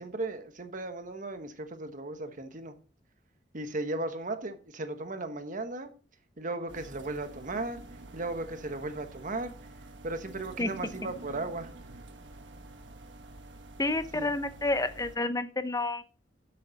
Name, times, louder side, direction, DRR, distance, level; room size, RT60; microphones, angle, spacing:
voice 1, 0.0-2.7 3.5-5.9 6.4-7.8 8.1-9.5 10.0-11.7 14.1-14.3, right 2 dB, 45° right, 1.2 m, -36 dB
sound 1, 6.7-15.2, right 2 dB, 80° right, 1.3 m, -48 dB
voice 2, 13.8-16.0, left 2 dB, 20° left, 0.8 m, -29 dB
12.0 x 7.9 x 4.0 m
head